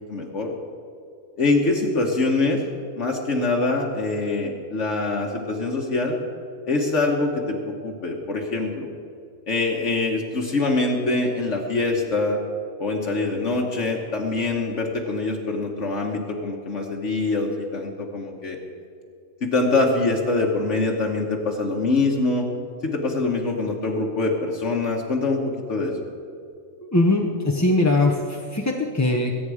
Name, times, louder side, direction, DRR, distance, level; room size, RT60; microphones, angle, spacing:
voice 1, 0.1-0.5 1.4-2.6 3.0-6.2 6.7-8.9 9.5-12.4 12.8-18.6 19.4-22.5 22.8-25.4 25.7-25.9, left 3 dB, 60° left, 0 dB, 1.5 m, -24 dB
voice 2, 26.9-29.4, left 2 dB, 15° left, 0 dB, 0.6 m, -21 dB
21.0 x 8.9 x 4.9 m, 2.4 s
omnidirectional pair, 1.5 m